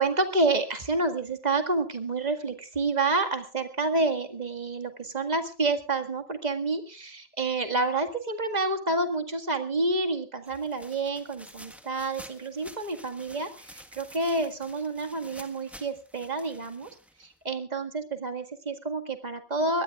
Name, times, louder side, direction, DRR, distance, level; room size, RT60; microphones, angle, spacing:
voice 1, 0.0-16.9 17.2-19.8, right 3 dB, 45° right, 7 dB, 2.0 m, -29 dB
sound 1, 10.5-17.5, equal, ahead, 1.5 m, -50 dB
23.0 x 18.0 x 2.4 m, 0.34 s
omnidirectional pair, 1.0 m